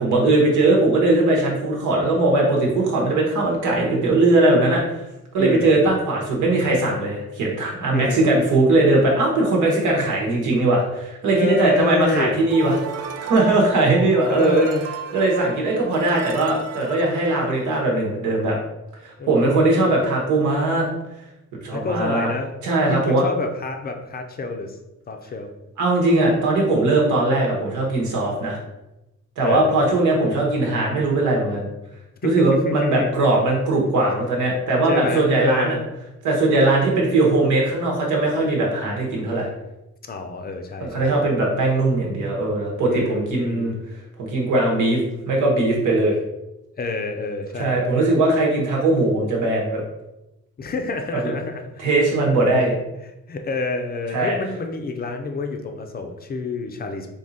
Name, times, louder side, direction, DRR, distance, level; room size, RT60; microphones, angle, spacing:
voice 1, 0.0-5.0 5.3-14.6 15.1-18.6 19.0-20.8 21.6-22.3 22.6-23.3 25.8-28.6 29.4-31.7 32.2-35.8 36.2-39.5 40.8-43.7 44.2-45.0 45.3-46.2 47.6-49.8 51.2-51.3 51.8-52.7 54.1-54.4, right 2 dB, 80° right, -2 dB, 1.3 m, -20 dB
voice 2, 5.4-5.8 7.9-8.3 11.4-12.4 14.3-14.8 19.2-19.6 21.7-22.5 22.9-24.8 25.1-25.5 29.4-29.8 32.2-33.2 34.9-35.9 40.1-41.2 42.9-43.8 46.8-47.9 50.6-51.7 53.0-57.1, left 3 dB, 30° left, 5 dB, 0.5 m, -28 dB
sound 1, 12.5-18.0, right 7 dB, 55° right, 0.5 m, -35 dB
3.6 x 2.8 x 4.1 m, 0.95 s
cardioid pair, 130°, 29 cm